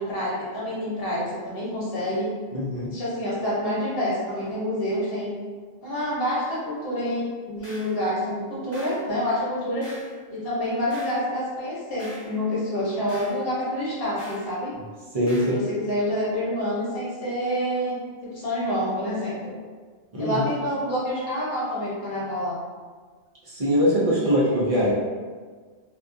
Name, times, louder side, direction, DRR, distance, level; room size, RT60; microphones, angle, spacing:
voice 1, 0.0-2.3 2.9-5.3 5.8-9.9 10.3-14.7 15.4-18.0 18.3-19.5 20.2-22.6, equal, 65° left, -7 dB, 1.0 m, -27 dB
voice 2, 2.5-2.9 15.1-15.6 20.1-20.4 23.5-24.9, equal, 50° right, -6 dB, 0.4 m, -22 dB
sound 1, 7.6-7.9 8.7-9.0 9.8-10.1 10.9-11.2 12.0-12.3 13.1-13.4 14.2-14.5 15.3-15.6, equal, 20° left, 0.5 m, -43 dB
2.3 x 2.1 x 2.5 m, 1.5 s
omnidirectional pair, 1.1 m